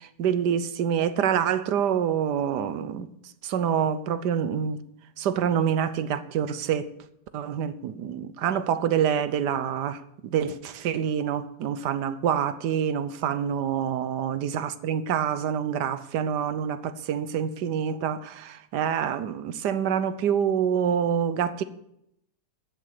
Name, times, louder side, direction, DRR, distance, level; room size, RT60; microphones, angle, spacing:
voice 1, 0.0-3.1 3.4-4.8 5.2-6.9 7.3-21.6, right 8 dB, 80° right, 1.4 m, -26 dB
14.0 x 7.1 x 6.6 m
omnidirectional pair, 1.8 m